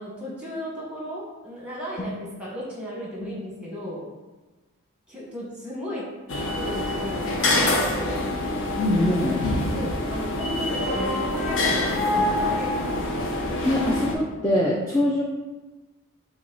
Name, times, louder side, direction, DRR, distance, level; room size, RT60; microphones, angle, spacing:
voice 1, 0.0-4.1 5.1-6.0 6.4-8.3 9.7-12.7, equal, 5° right, -5 dB, 1.1 m, -35 dB
sound 1, 6.3-14.1, left 1 dB, 55° left, 0.6 m, -25 dB
voice 2, 8.8-9.4 13.6-15.2, left 1 dB, 15° left, -4 dB, 0.3 m, -23 dB
6.0 x 2.2 x 3.8 m, 1.2 s
head